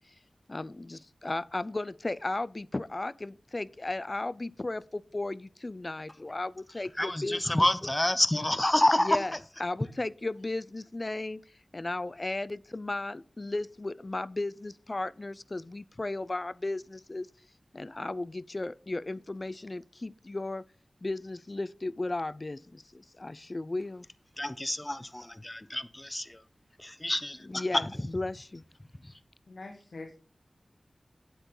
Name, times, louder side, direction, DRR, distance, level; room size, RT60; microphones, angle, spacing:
voice 1, 0.5-7.7 9.0-11.4 11.7-17.3 17.7-20.6 21.0-24.0 27.4-28.6, left 2 dB, 45° left, 0.4 m, -35 dB
voice 2, 7.0-9.2 24.4-26.4 26.8-27.6, left 1 dB, 25° left, 0.8 m, -28 dB
voice 3, 29.5-30.1, left 3 dB, 85° left, 1.4 m, -43 dB
9.3 x 8.2 x 3.8 m
cardioid pair, 45°, 0 cm